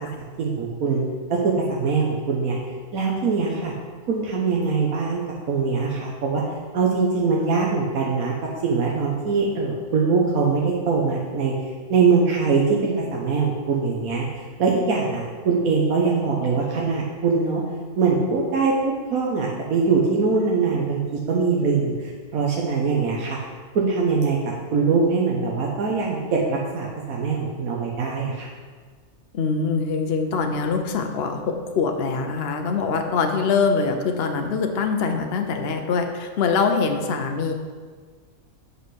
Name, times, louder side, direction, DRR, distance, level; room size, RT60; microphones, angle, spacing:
voice 1, 0.2-1.0 1.3-2.6 2.9-3.7 4.1-5.2 5.5-6.4 6.7-8.3 8.6-11.5 11.9-17.6 18.0-21.0 21.3-21.9 22.3-23.4 23.7-24.4 24.7-28.5, right 4 dB, 80° right, -2 dB, 1.5 m, -22 dB
voice 2, 29.3-37.5, left 5 dB, 50° left, 4 dB, 1.0 m, -23 dB
8.0 x 5.6 x 6.3 m, 1.5 s
omnidirectional pair, 1.5 m